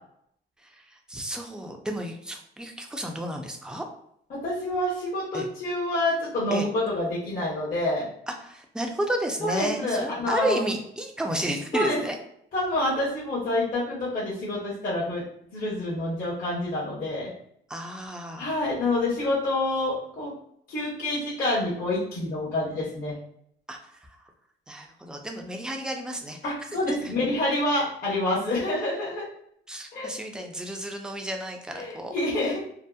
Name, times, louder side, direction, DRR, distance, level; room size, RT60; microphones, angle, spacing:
voice 1, 0.6-3.8 5.3-5.5 6.5-6.7 8.3-12.2 17.7-18.5 23.7-24.0 24.7-26.4 26.9-27.1 29.7-32.1, right 1 dB, 5° right, 3 dB, 0.4 m, -32 dB
voice 2, 4.3-8.1 9.4-10.6 11.7-12.0 12.5-15.2 15.5-17.3 18.4-20.3 20.7-23.1 26.4-29.2 29.9-30.1 30.3-30.4 31.7-32.6, left 1 dB, 45° left, -8 dB, 0.9 m, -27 dB
2.7 x 2.0 x 2.2 m, 0.71 s
cardioid pair, 90°, 20 cm